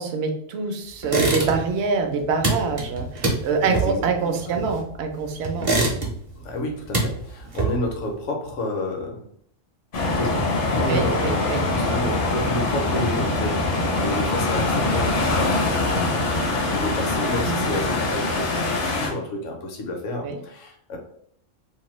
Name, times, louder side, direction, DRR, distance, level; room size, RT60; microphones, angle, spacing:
voice 1, 0.0-5.7 10.9-11.6 17.4-17.7 20.2-20.4, right 5 dB, 65° right, 5 dB, 0.8 m, -25 dB
sound 1, 1.0-1.8 2.1-5.0 5.4-6.4 6.7-8.0, right 2 dB, 35° right, 0.5 m, -25 dB
voice 2, 3.6-4.7 5.5-5.7 6.4-9.2 10.1-15.9 16.5-21.0, left 1 dB, 75° left, 1 dB, 1.0 m, -30 dB
sound 2, 9.9-19.1, left 2 dB, 55° left, 0.7 m, -23 dB
2.7 x 2.2 x 3.0 m, 0.67 s
omnidirectional pair, 1.3 m